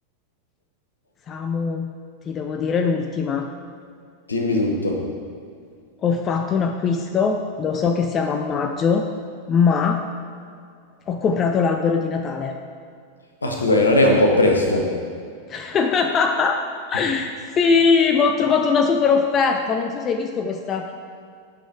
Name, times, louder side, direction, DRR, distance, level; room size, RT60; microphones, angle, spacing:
voice 1, 1.3-1.9 2.3-3.5 6.0-9.1 9.5-10.0 11.1-12.5 15.5-16.6 16.9-17.3 17.6-20.9, left 5 dB, 25° left, 5 dB, 0.5 m, -21 dB
voice 2, 4.3-5.0 13.4-14.9, left 1 dB, 75° left, 1 dB, 1.2 m, -18 dB
8.7 x 5.4 x 4.7 m, 2.3 s
figure-of-eight pair, 90°, 0 cm